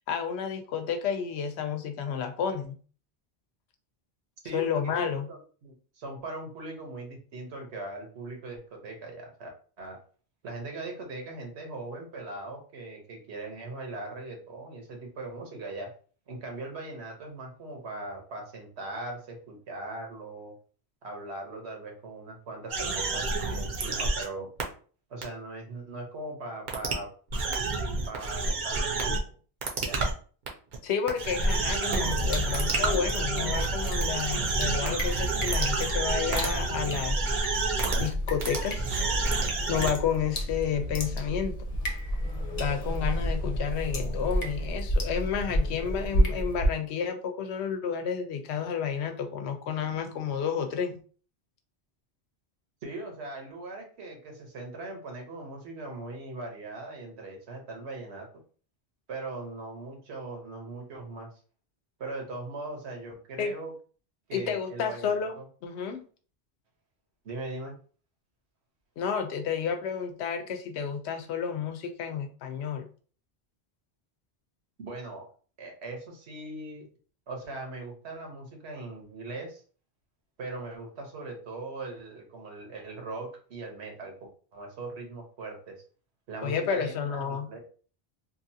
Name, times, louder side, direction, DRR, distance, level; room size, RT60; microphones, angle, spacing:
voice 1, 0.1-2.8 4.5-5.3 30.8-37.6 38.0-39.0 39.7-41.7 42.6-50.9 63.4-63.5 64.3-65.4 65.6-66.0 69.0-72.9 86.4-87.5, left 7 dB, 90° left, 6 dB, 0.9 m, -31 dB
voice 2, 4.4-9.5 9.8-10.0 10.4-15.9 16.3-20.5 21.0-24.5 25.1-27.1 28.1-29.3 29.8-30.0 52.8-58.3 59.1-61.3 62.0-63.7 64.3-65.4 67.2-67.8 74.8-75.3 75.6-76.8 77.3-79.6 80.4-85.8 86.3-87.6, right 2 dB, 85° right, 2 dB, 1.1 m, -40 dB
sound 1, 22.7-24.2 24.6-24.7 25.2-25.3 26.7-26.9 27.3-29.2 29.6-30.1 30.5-30.8 31.1-38.1 38.4-39.9, right 3 dB, 50° right, 0.7 m, -29 dB
sound 2, 31.9-46.7, equal, 45° left, 0.7 m, -31 dB
2.9 x 2.5 x 2.6 m, 0.41 s
omnidirectional pair, 1.1 m